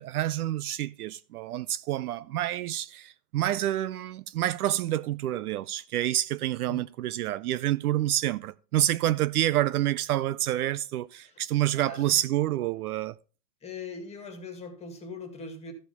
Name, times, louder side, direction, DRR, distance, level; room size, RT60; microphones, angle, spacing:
voice 1, 0.0-13.2, right 13 dB, 60° right, 0.5 m, -28 dB
voice 2, 11.7-12.2 13.6-15.7, left 4 dB, 10° left, 1.8 m, -41 dB
14.0 x 5.1 x 5.2 m
hypercardioid pair, 155°, 50 cm